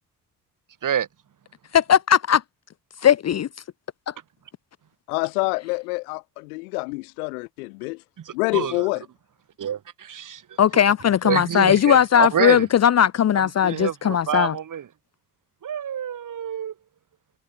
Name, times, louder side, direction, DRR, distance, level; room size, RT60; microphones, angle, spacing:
voice 1, 1.7-2.4 3.0-3.5 10.6-14.6, left 9 dB, 35° left, 0.9 m, -18 dB
voice 2, 5.1-8.0 8.3-9.0, left 27 dB, 70° left, 1.7 m, -27 dB
voice 3, 8.2-8.7 9.6-10.4 11.2-12.6 13.3-14.8 15.6-16.7, right 9 dB, 40° right, 3.2 m, -27 dB
figure-of-eight pair, 50°, 46 cm